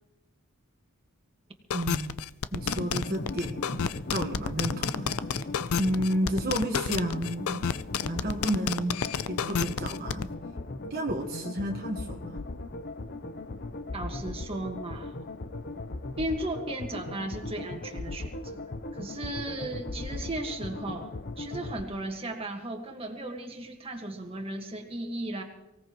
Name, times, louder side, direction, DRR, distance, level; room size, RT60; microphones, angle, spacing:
sound 1, 1.7-10.2, left 7 dB, 80° left, 0.5 m, -30 dB
voice 1, 1.7-2.2 2.5-5.4 5.8-7.6 8.0-9.0 9.3-10.3 10.8-12.4, right 1 dB, 45° right, 0 dB, 1.3 m, -31 dB
sound 2, 2.6-21.8, left 2 dB, 45° left, 0.7 m, -38 dB
voice 2, 13.9-15.1 16.2-18.6 18.9-25.4, right 1 dB, 25° right, 3 dB, 1.7 m, -36 dB
24.0 x 17.0 x 3.1 m, 0.95 s
head